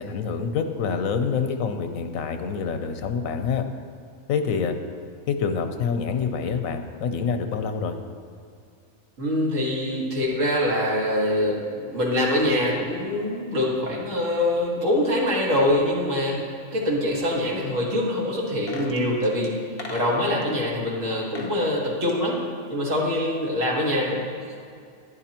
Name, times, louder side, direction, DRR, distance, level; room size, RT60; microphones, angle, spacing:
voice 1, 0.0-3.7 4.3-4.8 5.3-8.0, left 6 dB, 85° left, 7 dB, 1.1 m, -26 dB
voice 2, 9.2-16.4 16.7-19.6 19.9-22.4 22.7-24.2, left 1 dB, 70° right, -4 dB, 2.1 m, -24 dB
essen mysounds mirfat, 18.5-20.5 21.1-21.6 21.9-23.2 23.5-23.6, left 3 dB, 50° left, 1.1 m, -41 dB
11.0 x 10.5 x 2.9 m, 2.3 s
omnidirectional pair, 1.4 m